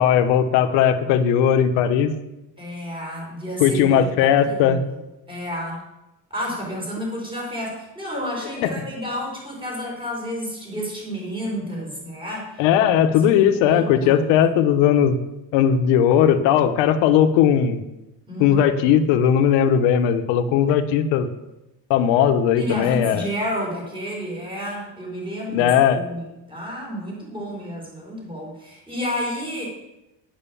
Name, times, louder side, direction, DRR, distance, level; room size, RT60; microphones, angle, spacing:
voice 1, 0.0-2.1 3.6-4.8 8.6-8.7 12.6-15.2 15.5-17.8 18.4-21.3 21.9-23.3 25.5-26.0, left 9 dB, 75° left, 8 dB, 1.2 m, -18 dB
voice 2, 2.6-4.8 5.3-5.8 6.3-12.6 13.7-14.3 18.3-18.6 22.6-29.6, equal, 10° right, -3 dB, 4.9 m, -31 dB
9.7 x 9.1 x 7.1 m, 0.95 s
cardioid pair, 160°, 44 cm